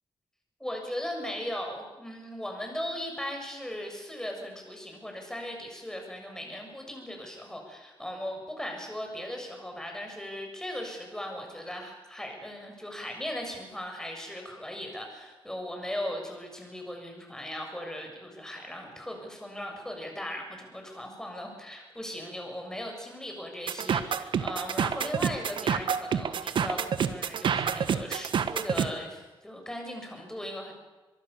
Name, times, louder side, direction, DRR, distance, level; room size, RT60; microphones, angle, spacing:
voice 1, 0.6-30.7, left 1 dB, 5° left, 2 dB, 7.1 m, -38 dB
sound 1, 23.7-28.9, right 7 dB, 70° right, 1.4 m, -28 dB
24.5 x 23.0 x 7.1 m, 1.2 s
wide cardioid pair, 130°, 9 cm